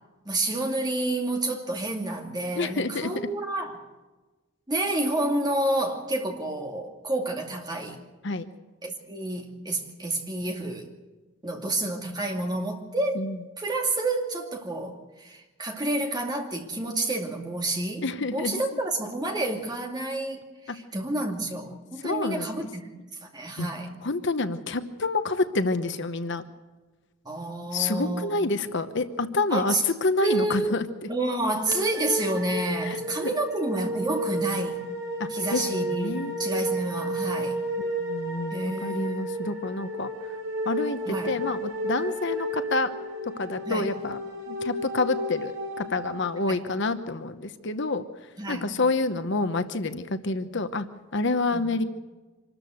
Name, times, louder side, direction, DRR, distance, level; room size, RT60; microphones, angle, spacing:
voice 1, 0.2-3.8 4.7-8.0 8.8-10.9 11.4-13.3 13.6-22.9 23.2-23.9 27.2-28.4 29.5-29.8 30.2-30.8 31.1-34.8 35.3-37.6 38.5-39.4 41.1-41.3 43.7-43.9 46.5-46.6 48.4-48.8 50.5-50.7 51.5-51.7, right 2 dB, 20° right, 2 dB, 2.5 m, -29 dB
voice 2, 2.5-3.3 8.2-8.5 13.1-13.4 18.0-18.6 20.7-20.8 22.0-22.7 23.6-23.7 24.0-26.4 27.7-30.8 32.8-33.0 35.2-36.4 37.8-40.1 40.6-42.9 43.4-44.2 44.5-48.0 48.5-50.9 51.1-51.8, left 3 dB, 55° left, 10 dB, 1.0 m, -28 dB
sound 1, 31.7-46.8, right 1 dB, 55° right, 5.5 m, -32 dB
25.5 x 13.5 x 8.0 m, 1.2 s
head